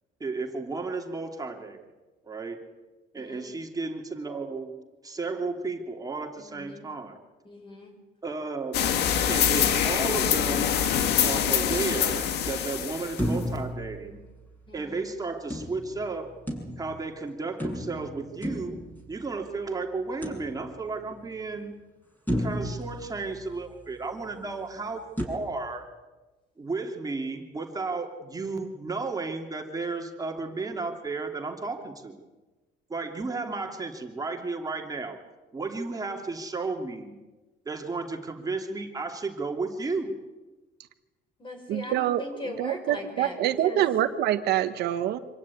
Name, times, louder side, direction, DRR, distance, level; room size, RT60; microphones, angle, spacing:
voice 1, 0.2-1.8 2.2-2.6 3.1-4.7 5.0-7.2 8.2-8.8 9.3-10.8 11.2-14.2 14.7-16.3 16.8-18.8 19.1-21.8 22.4-25.9 26.6-32.2 32.9-35.2 35.5-37.2 37.6-40.2, right 3 dB, 20° right, 2 dB, 2.9 m, -33 dB
voice 2, 3.2-3.5 6.4-6.9 7.4-7.9 14.7-15.1 41.4-43.8, left 2 dB, 30° left, 5 dB, 6.5 m, -40 dB
sound 1, 8.7-13.4, left 9 dB, 80° left, 1.9 m, -25 dB
sound 2, 13.2-14.8 15.5-17.1 17.6-19.5 20.2-21.1 21.6-21.7 22.3-23.9 25.2-25.3, equal, 10° left, 7.6 m, -33 dB
voice 3, 41.7-42.2 42.6-45.2, right 12 dB, 75° right, 9 dB, 1.4 m, -25 dB
26.0 x 16.0 x 9.7 m, 1.2 s
cardioid pair, 110°, 17 cm